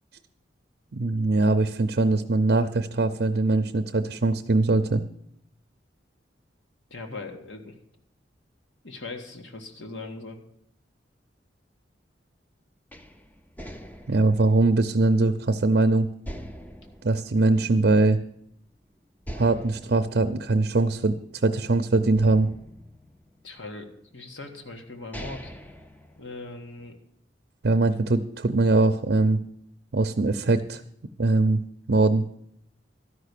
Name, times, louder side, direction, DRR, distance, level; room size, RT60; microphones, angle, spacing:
voice 1, 0.9-5.0 14.1-16.1 17.0-18.2 19.4-21.1 21.4-22.5 27.6-29.4 29.9-30.8 31.2-31.6 31.9-32.2, right 2 dB, 55° right, 8 dB, 0.5 m, -22 dB
voice 2, 6.9-7.7 8.8-10.4 23.4-25.5 26.2-27.0, left 3 dB, 85° left, 4 dB, 1.6 m, -39 dB
sound 1, 12.9-15.7 16.2-18.2 18.5-18.6 19.2-21.6 22.2-23.7 24.5-24.6 24.9-26.7, equal, 10° left, 0.6 m, -43 dB
13.0 x 5.8 x 8.2 m, 0.71 s
head